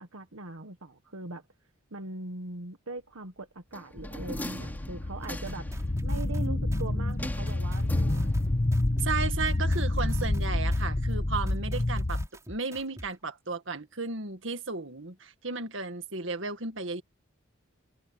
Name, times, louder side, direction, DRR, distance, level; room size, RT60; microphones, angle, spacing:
voice 1, 0.0-1.4 1.9-5.7 6.0-8.5, right 2 dB, 80° right, 1.5 m, -41 dB
sound 1, 3.7-5.8 7.2-8.6 8.9-9.0, left 1 dB, 10° left, 3.3 m, -41 dB
sound 2, 4.0-12.3, left 1 dB, 35° left, 1.0 m, -28 dB
sound 3, 5.2-13.1, equal, 15° right, 4.5 m, -46 dB
voice 2, 9.0-12.2 12.5-17.0, right 4 dB, 65° right, 2.1 m, -34 dB
head